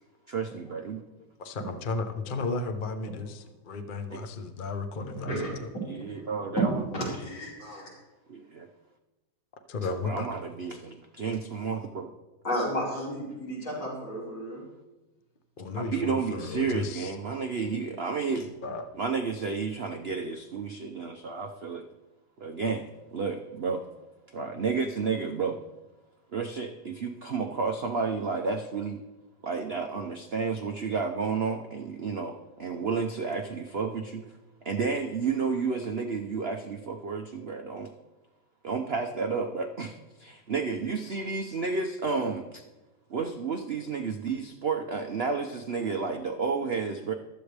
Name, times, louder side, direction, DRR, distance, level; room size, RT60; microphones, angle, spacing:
voice 1, 0.3-1.0 4.1-4.2 5.9-6.8 8.3-8.7 10.0-12.1 15.7-18.5 18.9-21.8 22.4-23.8 24.3-25.6 26.3-29.0 29.4-34.2 34.6-37.9 38.6-42.6 43.1-47.1, right 5 dB, 70° right, 4 dB, 0.5 m, -31 dB
voice 2, 1.4-5.7 9.7-10.3 15.6-17.1 18.6-18.8, left 3 dB, 45° left, 6 dB, 0.6 m, -34 dB
voice 3, 5.1-5.8 6.6-6.7 6.9-7.9 12.4-14.6, right 1 dB, 70° left, -7 dB, 5.6 m, -32 dB
15.0 x 12.5 x 3.4 m, 1.1 s
omnidirectional pair, 2.2 m